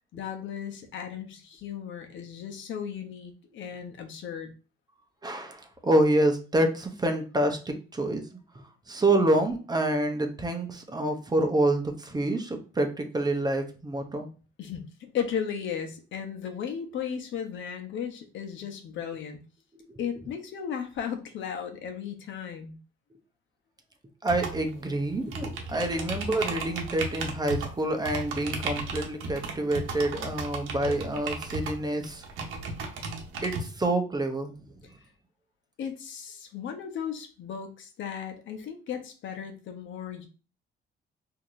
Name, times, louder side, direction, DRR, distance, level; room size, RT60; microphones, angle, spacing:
voice 1, 0.1-4.5 14.6-19.4 20.0-22.8 35.8-40.3, left 8 dB, 75° left, 5 dB, 0.9 m, -35 dB
voice 2, 5.2-8.2 8.9-14.3 19.9-20.0 24.2-32.3 33.4-34.5, right 1 dB, 20° right, 5 dB, 0.8 m, -27 dB
sound 1, 24.3-33.6, right 3 dB, 85° right, 0.9 m, -35 dB
4.5 x 2.8 x 2.6 m, 0.35 s
cardioid pair, 90°, 20 cm